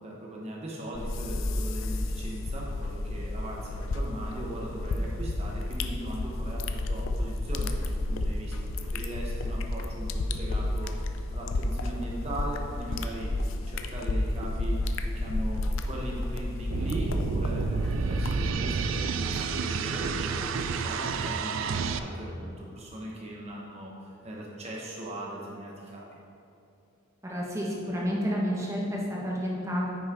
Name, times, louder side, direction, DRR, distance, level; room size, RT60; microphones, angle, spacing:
voice 1, 0.0-8.5 8.9-10.9 11.3-13.3 13.7-14.8 15.1-26.0, right 1 dB, 30° right, -3 dB, 0.9 m, -39 dB
sound 1, 0.9-18.5, left 2 dB, 70° left, 0.5 m, -31 dB
sound 2, 16.7-22.0, right 5 dB, 70° right, 0.4 m, -30 dB
voice 2, 27.2-29.9, equal, 15° right, -4 dB, 1.2 m, -30 dB
9.4 x 6.2 x 3.6 m, 2.8 s
head